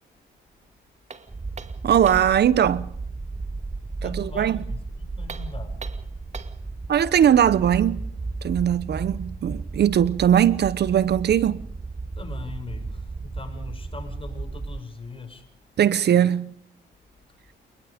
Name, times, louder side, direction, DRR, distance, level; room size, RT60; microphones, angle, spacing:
sound 1, 1.1-2.4 5.2-6.7, right 5 dB, 35° right, 2.4 m, -42 dB
sound 2, 1.3-14.8, right 3 dB, 20° right, 1.1 m, -34 dB
voice 1, 1.8-2.9 4.0-4.6 6.9-8.1 8.4-11.6 15.8-16.6, right 9 dB, 55° right, 0.9 m, -20 dB
voice 2, 4.0-5.8 12.2-15.5, left 4 dB, 25° left, 7.0 m, -40 dB
29.5 x 20.0 x 5.2 m
cardioid pair, 90°, 20 cm